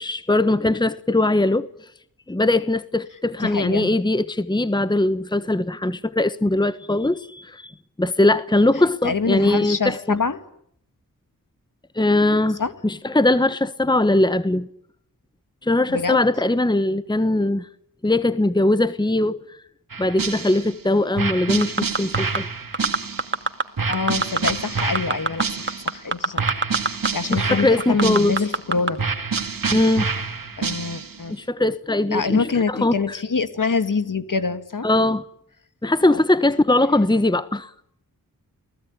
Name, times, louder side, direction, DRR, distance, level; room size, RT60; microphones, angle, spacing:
voice 1, 0.0-1.7 2.3-7.7 8.0-10.2 11.9-14.7 15.6-17.7 18.0-19.4 20.0-22.5 27.3-28.3 29.7-30.1 31.3-32.9 34.8-35.2 35.8-37.7, left 2 dB, 10° left, 1.2 m, -20 dB
voice 2, 3.4-4.0 9.0-10.4 12.6-12.7 15.9-16.2 23.9-26.5 26.8-29.0 30.6-31.3 32.1-34.9 36.1-36.2, left 4 dB, 60° left, 2.3 m, -25 dB
sound 1, 19.9-20.8 21.2-23.4 23.8-26.0 26.4-28.6 29.0-31.2, right 5 dB, 65° right, 2.4 m, -28 dB
sound 2, 21.6-22.4 22.7-23.6 23.9-24.5 24.8-27.1 27.3-27.4 27.8-28.9 29.4-29.5, right 3 dB, 30° right, 2.5 m, -22 dB
29.5 x 19.5 x 9.9 m
wide cardioid pair, 60°, 36 cm